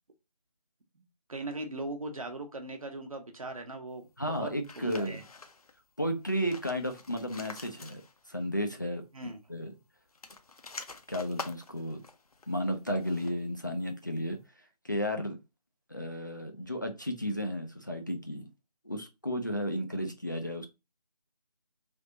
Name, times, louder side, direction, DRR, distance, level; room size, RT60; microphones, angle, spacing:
voice 1, 1.3-5.2 9.1-9.4, right 2 dB, 60° right, 1.0 m, -39 dB
voice 2, 4.2-5.2 6.0-8.0 8.3-9.0 9.5-9.7 11.1-12.0 12.5-14.4 14.8-15.4 15.9-18.5 18.8-20.7, equal, 30° left, 0.4 m, -33 dB
sound 1, 4.6-5.8 6.2-8.4 8.7-8.8 10.0-13.5, left 3 dB, 65° left, 0.7 m, -47 dB
3.4 x 2.8 x 3.8 m
figure-of-eight pair, 165°, 21 cm